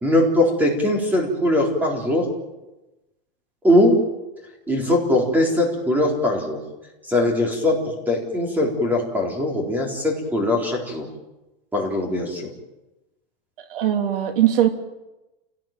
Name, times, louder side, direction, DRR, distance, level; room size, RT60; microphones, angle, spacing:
voice 1, 0.0-2.3 3.6-4.0 4.7-6.6 7.1-7.8 8.1-11.1 11.7-12.5, left 1 dB, 5° right, 1 dB, 4.0 m, -20 dB
voice 2, 13.6-14.7, right 11 dB, 65° right, 6 dB, 3.3 m, -20 dB
28.5 x 18.0 x 9.1 m, 1.0 s
supercardioid pair, 180°, 29 cm